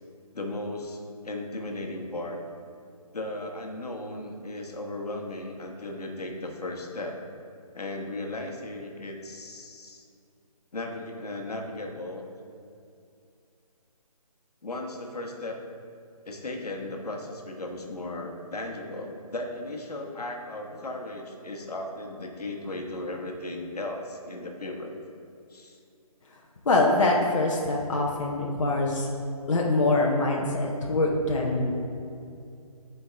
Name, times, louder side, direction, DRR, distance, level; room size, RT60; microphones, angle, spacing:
voice 1, 0.3-2.4 3.1-7.2 7.7-10.0 10.7-12.2 14.6-15.6 16.2-24.9 25.5-25.8, left 2 dB, 80° left, 1 dB, 1.2 m, -36 dB
voice 2, 26.6-29.1 29.5-31.7, left 2 dB, 55° left, -2 dB, 0.8 m, -24 dB
8.3 x 4.6 x 3.4 m, 2.5 s
hypercardioid pair, 165°, 20 cm